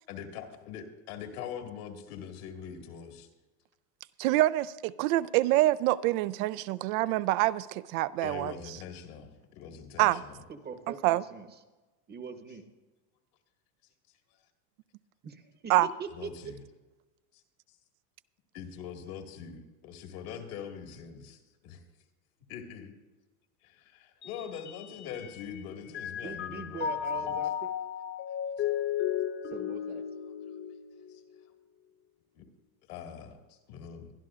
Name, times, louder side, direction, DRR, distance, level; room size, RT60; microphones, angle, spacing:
voice 1, 0.1-3.3 8.2-10.4 16.1-16.6 17.3-17.4 18.5-21.8 22.5-22.9 23.6-27.4 28.6-28.7 31.1-31.2 32.3-32.4 32.9-34.1, left 7 dB, 70° left, 4 dB, 2.0 m, -43 dB
voice 2, 4.2-8.5 10.0-10.2 11.0-11.2 15.7-15.9, right 16 dB, 65° right, 17 dB, 0.5 m, -26 dB
voice 3, 10.5-11.5 12.1-12.6 15.2-16.3 26.2-27.7 29.5-30.0, right 5 dB, 20° right, 8 dB, 0.9 m, -41 dB
Mallet percussion, 24.2-25.6 25.9-31.4, left 9 dB, 25° left, 0.4 m, -34 dB
22.5 x 11.5 x 2.5 m, 1.2 s
supercardioid pair, 115°, 46 cm